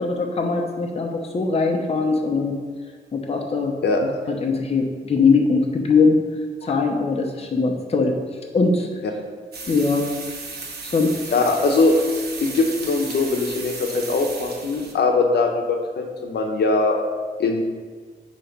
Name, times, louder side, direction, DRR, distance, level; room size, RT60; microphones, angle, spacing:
voice 1, 0.0-2.6 3.1-3.7 4.3-6.2 6.6-8.1 8.5-8.9 9.7-10.1 10.8-11.1, left 4 dB, 35° left, 1 dB, 0.8 m, -21 dB
sound 1, 9.5-14.9, right 3 dB, 65° right, 1.2 m, -35 dB
voice 2, 11.3-11.9 12.4-17.0 17.4-17.6, left 3 dB, 75° left, 2 dB, 0.9 m, -21 dB
8.8 x 3.1 x 5.2 m, 1.5 s
wide cardioid pair, 115°, 17 cm